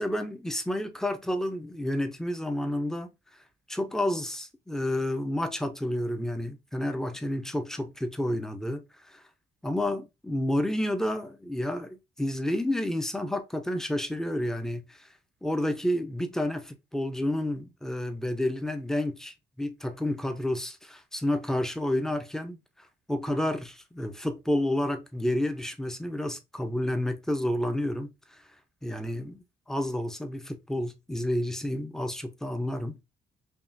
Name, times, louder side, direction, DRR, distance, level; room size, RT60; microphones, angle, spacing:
voice 1, 0.0-3.1 3.7-9.2 9.6-15.1 15.4-22.6 23.1-28.4 28.8-33.0, left 1 dB, ahead, 0.6 m, -30 dB
5.3 x 2.4 x 2.6 m
cardioid pair, 90°, 20 cm